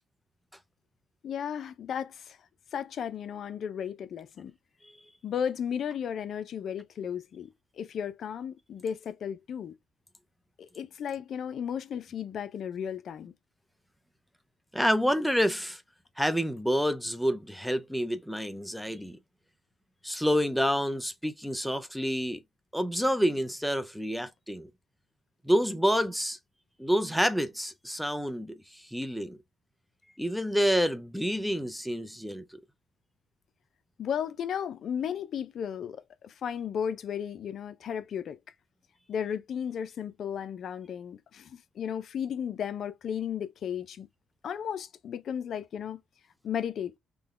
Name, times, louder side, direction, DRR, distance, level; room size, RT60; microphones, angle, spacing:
voice 1, 1.2-2.4 2.7-4.5 5.2-7.5 7.8-9.8 10.6-13.3 34.0-38.4 39.1-44.1 44.4-46.0 46.4-47.0, left 8 dB, 65° left, 0.4 m, -34 dB
voice 2, 14.7-15.8 16.2-19.2 20.0-22.4 22.7-24.7 25.4-26.4 26.8-29.4 30.2-32.4, equal, ahead, 0.5 m, -28 dB
3.8 x 2.1 x 3.1 m
cardioid pair, 90°, 0 cm